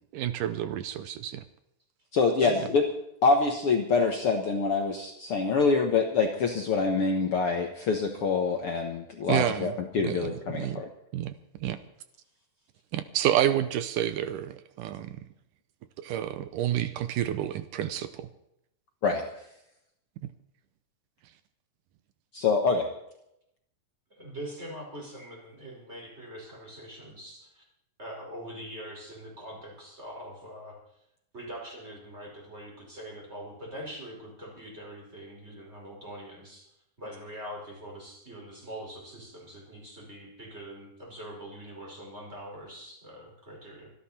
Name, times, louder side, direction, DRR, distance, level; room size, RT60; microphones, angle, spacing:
voice 1, 0.1-1.4 9.3-9.7 10.0-10.8 11.1-11.3 11.6-11.8 12.9-15.2 16.0-18.3, right 11 dB, 75° right, 12 dB, 2.0 m, -29 dB
voice 2, 2.1-2.8 3.2-10.8 19.0-19.2 22.3-22.9, left 4 dB, 60° left, 3 dB, 1.5 m, -25 dB
voice 3, 24.1-27.6 28.0-30.8 31.3-36.7 37.0-43.9, equal, 15° right, -2 dB, 5.2 m, -43 dB
25.5 x 11.0 x 4.3 m, 0.79 s
omnidirectional pair, 4.2 m